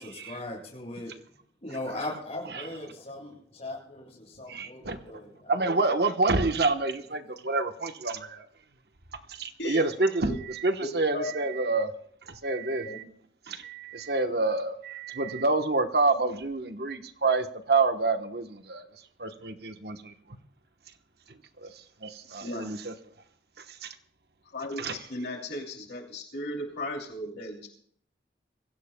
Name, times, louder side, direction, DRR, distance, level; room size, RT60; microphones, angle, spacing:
voice 1, 0.0-5.6, left 2 dB, 35° left, -1 dB, 7.4 m, -39 dB
voice 2, 4.5-5.0 5.5-8.5 9.3-11.9 12.3-13.0 13.5-18.9 19.2-20.1 21.6-22.9 23.6-23.9 24.8-25.0, right 3 dB, 60° right, 8 dB, 1.1 m, -28 dB
voice 3, 10.8-11.3 12.8-13.0 22.4-22.7 24.5-27.7, left 1 dB, 65° left, 0 dB, 2.9 m, -36 dB
24.0 x 16.5 x 2.3 m, 0.62 s
head